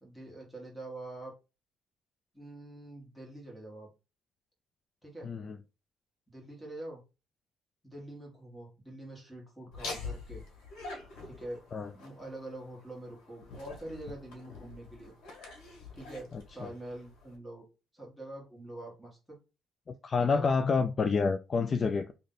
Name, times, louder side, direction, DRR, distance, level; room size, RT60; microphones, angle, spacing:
voice 1, 0.0-1.4 2.3-3.9 5.0-5.3 6.3-7.0 7.8-10.4 11.2-11.6 11.9-15.1 15.9-17.7 17.9-19.4 20.2-20.5, right 1 dB, ahead, 1.7 m, -45 dB
voice 2, 5.2-5.5 11.7-11.9 20.0-22.1, left 4 dB, 35° left, 0.3 m, -28 dB
Laughter, 9.7-17.4, left 3 dB, 80° left, 1.7 m, -45 dB
3.3 x 2.7 x 3.9 m
cardioid pair, 125°, 0 cm